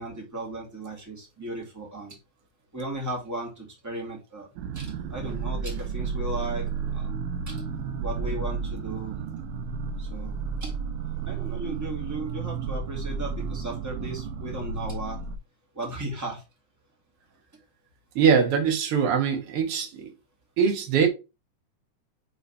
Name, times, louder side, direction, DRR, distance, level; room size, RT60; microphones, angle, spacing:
voice 1, 0.0-2.2 2.7-4.5 4.7-6.7 6.9-7.1 7.5-7.6 8.0-9.2 10.0-10.7 11.2-15.2 15.7-16.4, right 1 dB, 10° right, 1.3 m, -36 dB
sound 1, 4.6-15.4, right 5 dB, 90° right, 2.2 m, -32 dB
voice 2, 18.2-20.1 20.6-21.1, right 6 dB, 55° right, 2.0 m, -22 dB
7.0 x 3.2 x 4.2 m
omnidirectional pair, 3.6 m